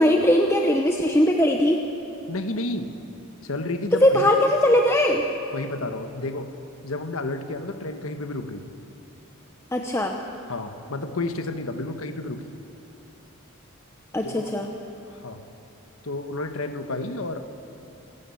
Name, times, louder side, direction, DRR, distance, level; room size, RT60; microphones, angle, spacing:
voice 1, 0.0-1.8 3.9-5.2 9.7-10.2 14.1-14.7, left 1 dB, 10° left, 2 dB, 0.9 m, -20 dB
voice 2, 2.3-3.0 3.4-4.3 5.5-6.5 6.8-8.6 10.5-12.5 14.2-14.5 15.1-15.4 16.0-17.5, left 2 dB, 70° left, 8 dB, 1.3 m, -31 dB
27.5 x 12.0 x 8.5 m, 2.9 s
head